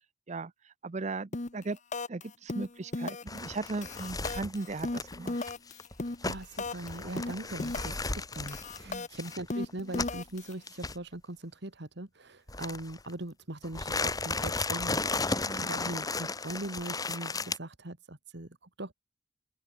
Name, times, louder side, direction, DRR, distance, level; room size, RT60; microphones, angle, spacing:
voice 1, 0.3-1.8 2.1-5.4 8.8-9.1 15.4-15.7, right 3 dB, 35° right, 0.6 m, -37 dB
sound 1, 1.3-1.6 1.9-2.2 2.5-3.4 3.7-6.9 7.2-8.1 8.3-10.5, left 2 dB, 40° left, 1.0 m, -35 dB
sound 2, 3.3-10.3 10.7-11.0 12.5-13.1 13.6-17.6, left 3 dB, 20° left, 2.1 m, -35 dB
voice 2, 6.2-18.9, right 1 dB, 60° right, 2.1 m, -41 dB
open air
head